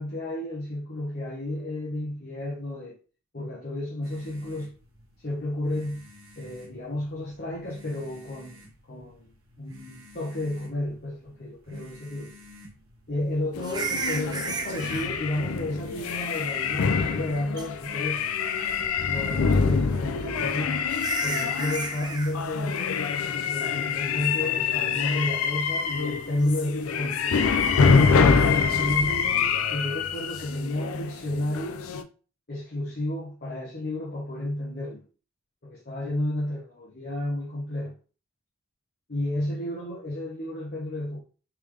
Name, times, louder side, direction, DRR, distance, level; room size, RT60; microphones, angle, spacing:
voice 1, 0.0-2.9 3.3-4.7 5.2-6.1 6.4-9.3 9.6-12.3 13.1-18.2 19.1-20.9 21.2-23.0 23.5-27.2 27.8-31.9 32.5-35.0 35.6-37.9 39.1-41.2, left 1 dB, 45° left, 0.8 m, -32 dB
sound 1, 4.0-20.0, equal, 65° right, 1.0 m, -51 dB
sound 2, 13.5-32.0, left 5 dB, 75° left, 0.4 m, -25 dB
sound 3, 13.6-15.1 16.7-17.3 17.6-17.7 18.3-18.8 20.2-20.3 20.9-22.3 26.4-26.6, right 4 dB, 20° right, 0.3 m, -34 dB
3.4 x 3.3 x 3.2 m
head